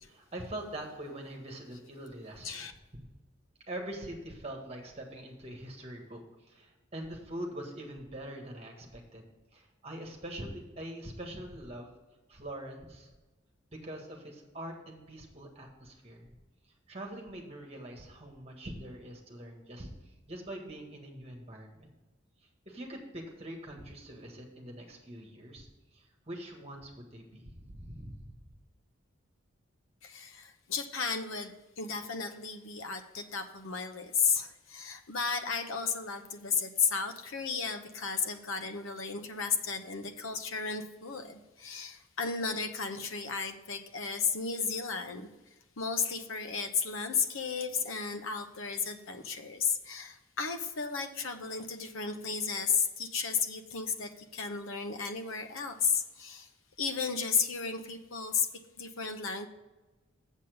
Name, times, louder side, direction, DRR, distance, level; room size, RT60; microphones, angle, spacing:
voice 1, 0.0-2.7 3.7-9.2 9.5-12.0 12.3-13.1 13.8-16.3 16.9-21.9 22.6-28.4, right 1 dB, 30° right, 1 dB, 1.6 m, -43 dB
voice 2, 30.0-45.3 45.8-56.5 56.8-58.5 58.8-59.5, left 5 dB, 75° left, 7 dB, 0.9 m, -33 dB
7.3 x 7.1 x 5.1 m, 1.1 s
head